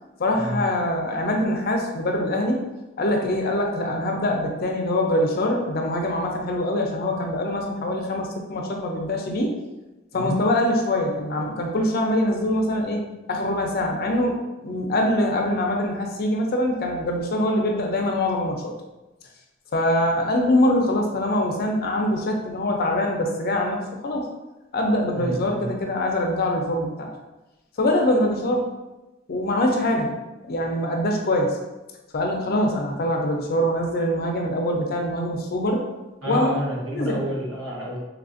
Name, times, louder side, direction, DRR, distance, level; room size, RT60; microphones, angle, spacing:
voice 1, 0.2-2.6 3.0-9.6 10.1-13.0 13.3-14.4 14.6-18.7 19.7-24.3 24.7-27.1 27.8-28.7 29.3-30.1 30.5-31.6 32.1-35.8 36.3-36.5 36.9-37.2, left 1 dB, 50° left, 2 dB, 0.5 m, -23 dB
voice 2, 25.1-25.7 36.2-38.0, equal, 85° right, -4 dB, 0.9 m, -29 dB
3.4 x 2.4 x 2.5 m, 1.0 s
head